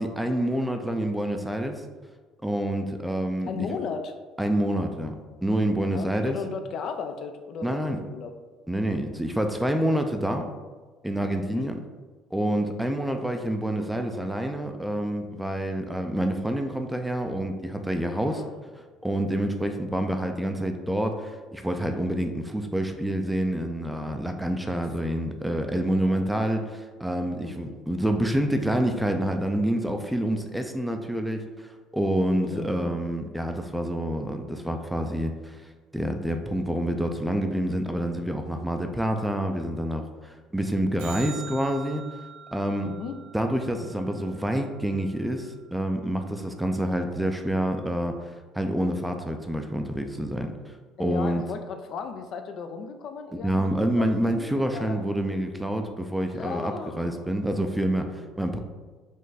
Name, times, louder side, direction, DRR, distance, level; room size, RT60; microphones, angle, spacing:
voice 1, 0.0-1.8 2.4-3.7 4.4-5.2 5.4-6.4 7.6-8.0 8.7-10.5 11.0-11.8 12.3-18.4 19.0-35.6 35.9-42.0 42.5-42.9 43.3-50.7 51.0-51.4 53.3-58.6, right 1 dB, 5° right, 5 dB, 0.4 m, -27 dB
voice 2, 3.5-4.1 5.8-8.3 11.3-11.7 18.1-18.6 20.0-20.1 24.7-24.8 26.0-26.4 27.4-27.8 32.4-32.9 42.8-43.2 51.0-55.0 56.3-57.3 58.1-58.2, left 5 dB, 55° left, 7 dB, 0.4 m, -36 dB
sound 1, 41.0-45.5 52.0-52.1, right 6 dB, 90° right, 0.5 m, -45 dB
5.3 x 2.5 x 3.9 m, 1.4 s
cardioid pair, 105°, 0 cm